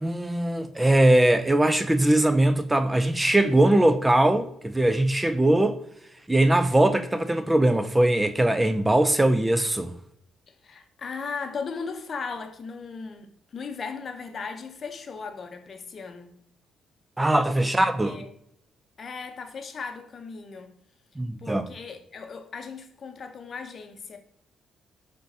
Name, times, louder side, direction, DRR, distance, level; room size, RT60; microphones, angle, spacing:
voice 1, 0.0-5.8 6.3-10.0 17.2-18.2 21.2-21.7, right 1 dB, 10° right, 0.3 m, -21 dB
voice 2, 10.5-16.3 17.6-17.7 18.0-18.3 19.0-20.7 21.4-24.2, left 5 dB, 45° left, 0.7 m, -37 dB
5.6 x 3.4 x 2.7 m
cardioid pair, 90°, 0 cm